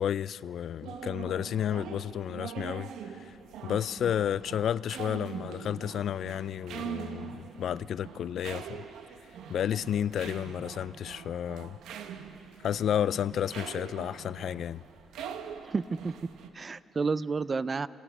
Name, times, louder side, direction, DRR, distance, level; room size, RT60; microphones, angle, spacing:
voice 1, 0.0-3.4 3.6-8.9 9.5-11.8 12.6-14.8, left 9 dB, 65° left, 0.4 m, -31 dB
sound 1, 0.8-16.5, right 8 dB, 85° right, 1.0 m, -43 dB
voice 2, 15.6-16.1 16.5-17.9, right 4 dB, 35° right, 0.5 m, -30 dB
27.5 x 18.0 x 6.2 m
cardioid pair, 90°, 0 cm